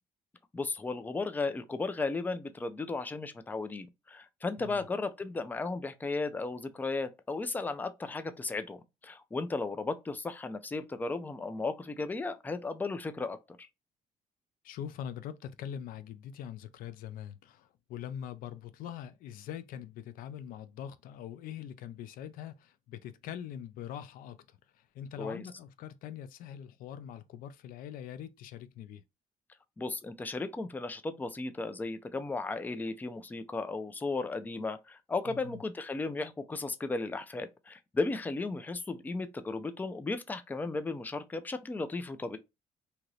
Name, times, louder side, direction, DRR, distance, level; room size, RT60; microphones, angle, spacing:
voice 1, 0.5-13.7 25.2-25.4 29.8-42.4, left 3 dB, 10° left, 0.4 m, -35 dB
voice 2, 14.6-29.0 35.3-35.6, left 9 dB, 90° left, 0.4 m, -43 dB
2.8 x 2.5 x 3.1 m
cardioid pair, 120°, 14 cm